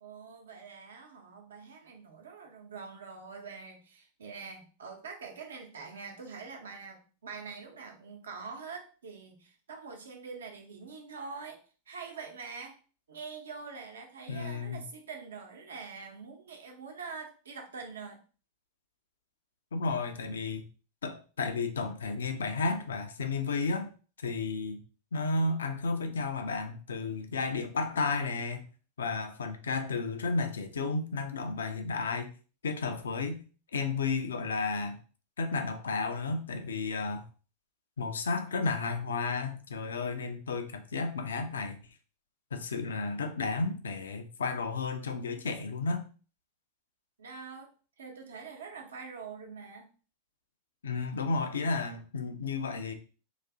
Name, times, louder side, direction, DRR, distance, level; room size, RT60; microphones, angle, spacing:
voice 1, 0.0-11.6 11.9-12.8 13.1-18.2 47.2-47.7 48.0-49.9 50.9-51.1, right 5 dB, 65° right, 3 dB, 0.8 m, -44 dB
voice 2, 14.3-14.8 19.7-20.6 21.0-23.9 24.2-24.8 25.1-28.7 29.0-32.3 32.6-33.4 33.7-35.0 35.4-37.2 38.0-41.8 42.5-46.0 50.8-52.9, left 4 dB, 65° left, 7 dB, 0.6 m, -32 dB
4.1 x 2.7 x 3.5 m, 0.37 s
figure-of-eight pair, 90°, 0 cm